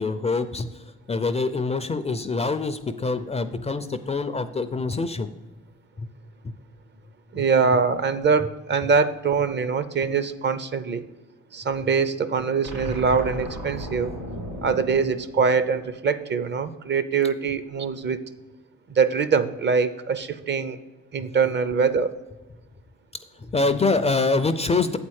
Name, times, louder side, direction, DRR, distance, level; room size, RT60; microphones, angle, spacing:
voice 1, 0.0-5.3 6.0-6.1 7.3-7.4 23.3-25.0, left 3 dB, 20° left, 10 dB, 0.4 m, -25 dB
voice 2, 7.3-11.0 11.5-14.1 14.6-18.2 18.9-20.8 21.1-22.1, right 5 dB, 35° right, 13 dB, 0.5 m, -23 dB
sound 1, 12.6-16.0, equal, 90° right, 2.7 m, -36 dB
8.0 x 4.3 x 6.3 m, 1.1 s
cardioid pair, 90°, 30 cm